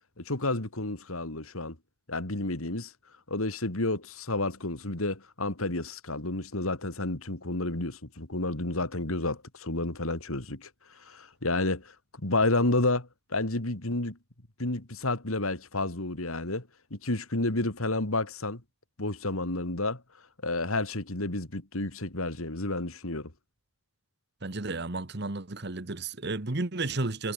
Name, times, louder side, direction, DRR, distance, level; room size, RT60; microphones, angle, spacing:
voice 1, 0.2-1.8 2.1-2.9 3.3-14.2 14.6-18.6 19.0-20.0 20.4-23.3, left 2 dB, 80° left, 3.1 m, -30 dB
voice 2, 24.4-27.3, right 2 dB, 50° right, 1.3 m, -32 dB
head